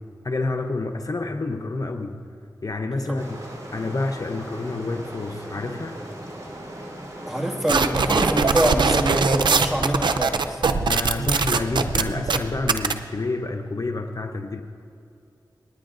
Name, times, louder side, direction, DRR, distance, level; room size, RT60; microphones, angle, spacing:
voice 1, 0.2-2.2 2.6-3.4 3.7-6.0 10.8-14.6, left 3 dB, 50° left, 5 dB, 0.7 m, -28 dB
sound 1, 3.2-9.7, right 1 dB, 45° right, 3.6 m, -38 dB
voice 2, 7.3-10.6, equal, 5° right, 0 dB, 1.9 m, -25 dB
sound 2, 7.7-12.9, right 4 dB, 90° right, 0.5 m, -21 dB
28.0 x 9.8 x 2.5 m, 2.6 s
cardioid pair, 45°, 8 cm